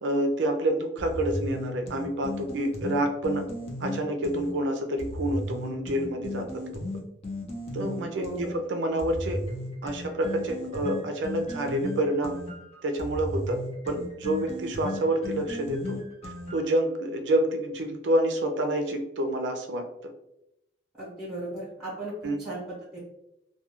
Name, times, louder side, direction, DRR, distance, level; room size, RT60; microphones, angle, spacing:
voice 1, 0.0-3.5 3.8-6.8 7.7-9.4 9.8-12.4 12.8-16.0 16.2-20.1 22.2-22.4, right 1 dB, 80° right, 5 dB, 0.4 m, -28 dB
sound 1, 1.0-4.5 5.0-8.5 9.0-16.8, left 1 dB, 35° left, 0.5 m, -35 dB
voice 2, 8.1-8.5 8.8-8.9 21.0-23.0, right 1 dB, 5° right, -8 dB, 0.8 m, -37 dB
2.3 x 2.2 x 2.8 m, 0.85 s
head